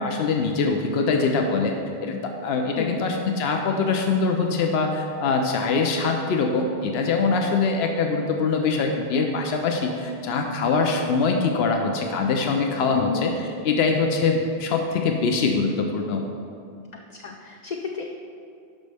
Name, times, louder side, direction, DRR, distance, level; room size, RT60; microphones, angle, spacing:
voice 1, 0.0-1.7 2.0-13.3 13.6-16.2, left 4 dB, 85° left, 3 dB, 0.9 m, -23 dB
voice 2, 12.9-13.3 17.1-18.0, left 6 dB, 55° left, 2 dB, 0.5 m, -30 dB
11.5 x 5.3 x 3.4 m, 2.4 s
omnidirectional pair, 1.0 m